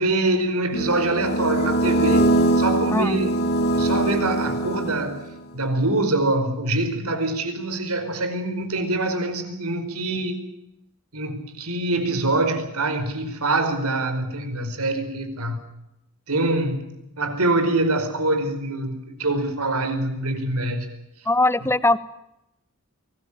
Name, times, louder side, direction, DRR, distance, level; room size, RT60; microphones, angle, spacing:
voice 1, 0.0-3.3 3.7-5.2 5.5-10.4 11.1-15.6 16.3-16.9 17.2-20.9, right 2 dB, 80° right, 8 dB, 4.9 m, -24 dB
sound 1, 0.7-5.4, right 1 dB, 45° left, 2.1 m, -22 dB
voice 2, 21.3-22.0, left 2 dB, 10° left, 15 dB, 1.0 m, -20 dB
23.0 x 20.5 x 8.8 m, 0.87 s
head